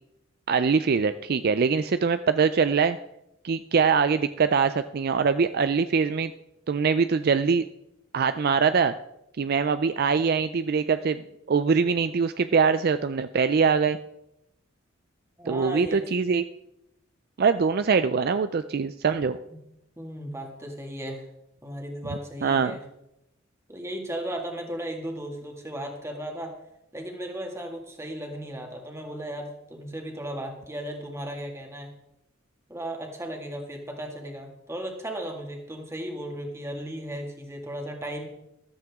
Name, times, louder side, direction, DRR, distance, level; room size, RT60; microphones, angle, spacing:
voice 1, 0.5-3.0 3.4-6.3 6.7-7.6 8.1-8.9 9.4-11.2 11.5-14.0 15.5-16.4 17.4-19.4 22.4-22.7, right 5 dB, 50° right, 12 dB, 0.4 m, -23 dB
voice 2, 15.4-16.0 19.5-19.6 20.0-21.3 21.6-22.8 23.7-26.5 26.9-31.9 32.7-38.3, right 1 dB, 15° right, 2 dB, 2.1 m, -35 dB
14.5 x 13.0 x 3.6 m, 0.84 s
head